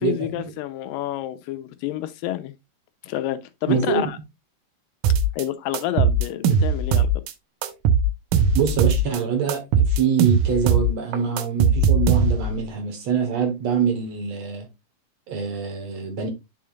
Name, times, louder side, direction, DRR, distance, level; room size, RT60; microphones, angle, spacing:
voice 1, 0.0-2.5 3.0-4.2 5.3-7.2, left 13 dB, 85° left, 2.4 m, -29 dB
voice 2, 3.7-4.1 8.5-14.7 15.3-16.3, right 6 dB, 60° right, 2.3 m, -24 dB
sound 1, 5.0-5.4 5.7-7.3 7.6-9.2 9.5-12.6, right 4 dB, 75° right, 2.3 m, -19 dB
9.6 x 5.7 x 2.4 m
omnidirectional pair, 4.0 m